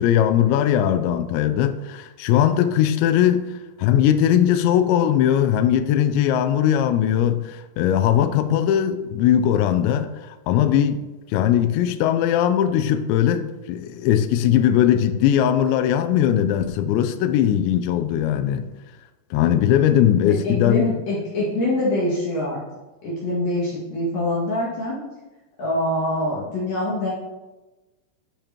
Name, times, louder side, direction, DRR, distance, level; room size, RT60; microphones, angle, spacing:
voice 1, 0.0-11.0 11.3-18.6 19.3-20.9, left 10 dB, 85° left, 2.6 m, -19 dB
voice 2, 20.2-22.6 23.0-25.0 25.6-27.1, left 1 dB, 50° left, 3.1 m, -24 dB
12.0 x 6.8 x 3.0 m
omnidirectional pair, 5.8 m